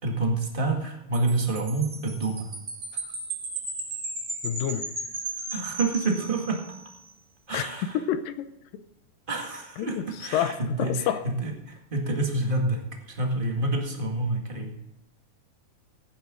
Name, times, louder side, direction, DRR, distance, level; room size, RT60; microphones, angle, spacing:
voice 1, 0.0-2.5 5.5-6.6 7.5-8.0 9.3-14.8, right 2 dB, 25° right, 1 dB, 1.3 m, -28 dB
Wind chime, 1.1-6.8, right 2 dB, 45° right, 4.8 m, -35 dB
voice 2, 4.4-4.9 7.5-7.7 7.9-8.5 9.8-11.3, left 10 dB, 85° left, 10 dB, 2.5 m, -28 dB
16.0 x 9.2 x 3.8 m, 0.93 s
omnidirectional pair, 3.9 m